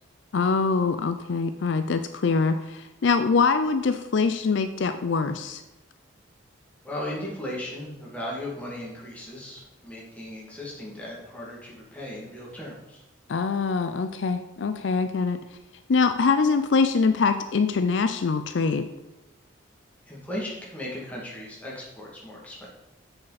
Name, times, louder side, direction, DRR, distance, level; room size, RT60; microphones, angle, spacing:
voice 1, 0.3-5.6 13.3-15.4 15.9-18.9, left 4 dB, 65° left, 9 dB, 0.4 m, -24 dB
voice 2, 6.8-13.0 20.1-22.7, left 1 dB, 5° left, -5 dB, 2.3 m, -37 dB
8.0 x 6.6 x 4.2 m, 0.96 s
head